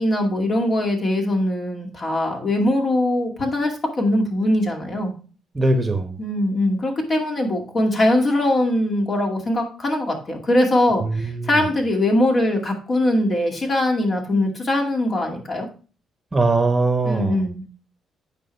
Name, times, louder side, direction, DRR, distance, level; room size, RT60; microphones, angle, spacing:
voice 1, 0.0-5.1 6.2-15.7 17.0-17.6, left 1 dB, 45° left, 1 dB, 2.3 m, -21 dB
voice 2, 5.5-6.1 11.0-11.5 16.3-17.5, right 2 dB, 20° right, 6 dB, 1.1 m, -21 dB
9.1 x 5.0 x 3.2 m, 0.36 s
cardioid pair, 90°, 0 cm